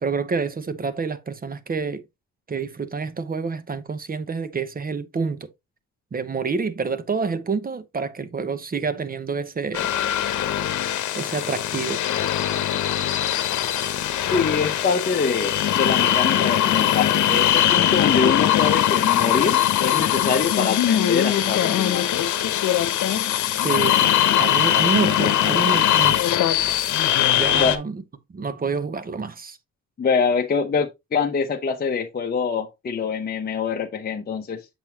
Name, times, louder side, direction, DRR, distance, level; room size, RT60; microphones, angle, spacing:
voice 1, 0.0-2.0 2.5-5.5 6.1-9.9 11.1-12.0 17.3-17.4 23.5-24.1 24.4-26.2 27.4-28.0 28.3-29.6, right 5 dB, 30° right, 0.9 m, -28 dB
sound 1, 9.7-27.8, left 11 dB, 70° left, 1.0 m, -21 dB
voice 2, 14.2-22.1 27.5-27.8 30.0-34.7, left 5 dB, 30° left, 0.9 m, -24 dB
7.2 x 5.5 x 2.9 m
cardioid pair, 90°, 30 cm